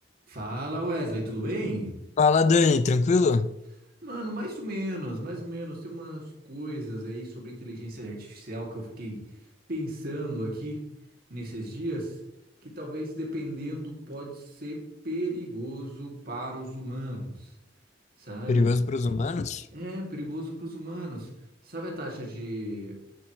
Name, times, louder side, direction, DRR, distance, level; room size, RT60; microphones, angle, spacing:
voice 1, 0.3-1.9 4.0-9.2 9.7-10.8 11.3-12.2 12.6-17.5 18.2-18.7 19.7-21.3 21.6-23.0, right 1 dB, 55° right, 2.3 m, -34 dB
voice 2, 2.2-3.5 18.5-19.7, left 4 dB, 40° left, 0.3 m, -22 dB
8.8 x 7.8 x 3.1 m
head